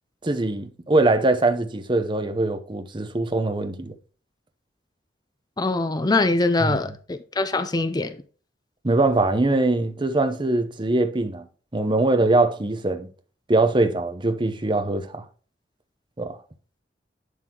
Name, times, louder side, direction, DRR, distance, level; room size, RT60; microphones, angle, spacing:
voice 1, 0.2-3.9 6.6-6.8 8.8-11.4 11.7-13.1 13.5-15.3 16.2-16.4, right 2 dB, 25° right, 0.8 m, -22 dB
voice 2, 5.6-8.2, left 2 dB, 20° left, 0.5 m, -23 dB
11.0 x 4.1 x 2.9 m
head